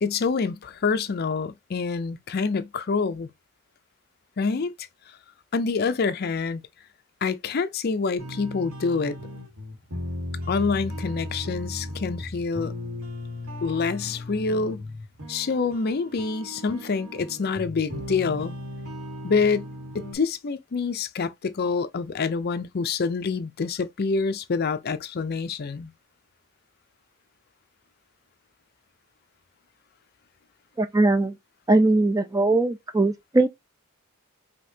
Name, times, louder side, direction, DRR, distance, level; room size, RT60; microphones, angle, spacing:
voice 1, 0.0-3.3 4.4-4.7 5.5-6.6 7.2-9.2 10.5-12.7 13.6-14.8 15.3-18.5 19.2-19.7 19.9-25.9, left 4 dB, 45° left, 0.5 m, -26 dB
sound 1, 8.2-20.2, left 1 dB, 80° right, 1.7 m, -36 dB
voice 2, 30.8-31.4 31.7-33.5, right 2 dB, 15° right, 0.4 m, -20 dB
5.2 x 2.7 x 2.7 m
head